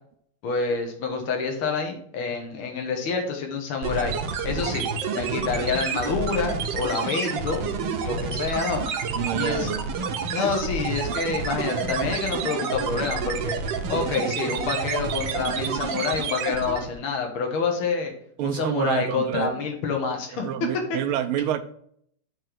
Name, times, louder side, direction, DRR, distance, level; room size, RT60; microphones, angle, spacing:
voice 1, 0.4-4.1 4.4-4.9 5.1-7.7 8.0-8.8 9.3-9.7 10.3-13.6 13.9-18.1 18.4-21.0, left 5 dB, 70° left, 2 dB, 2.1 m, -27 dB
sound 1, 3.8-17.0, right 5 dB, 65° right, 1.4 m, -29 dB
voice 2, 9.1-9.8 18.4-19.6 20.4-21.6, right 10 dB, 80° right, 10 dB, 1.5 m, -27 dB
8.7 x 3.3 x 6.0 m, 0.65 s
omnidirectional pair, 2.4 m